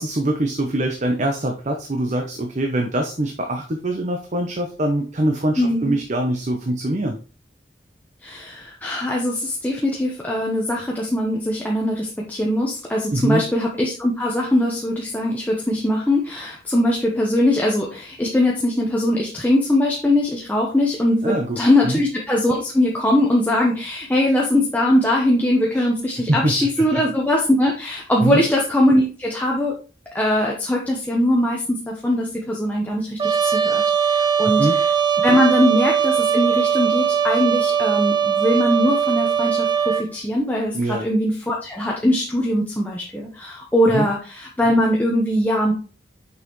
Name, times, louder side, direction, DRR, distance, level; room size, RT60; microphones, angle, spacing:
voice 1, 0.0-7.2 13.1-13.4 21.2-21.6 21.8-22.0 25.7-25.8 26.3-27.0 28.2-28.4 34.6-34.8 40.7-41.0 43.9-44.1, right 1 dB, 45° right, 3 dB, 0.8 m, -23 dB
voice 2, 5.6-5.9 8.2-29.8 30.1-34.7 35.2-45.7, left 1 dB, 10° left, -2 dB, 0.9 m, -21 dB
Trumpet, 33.2-40.1, right 7 dB, 25° right, 0.4 m, -20 dB
6.5 x 5.5 x 3.1 m, 0.37 s
head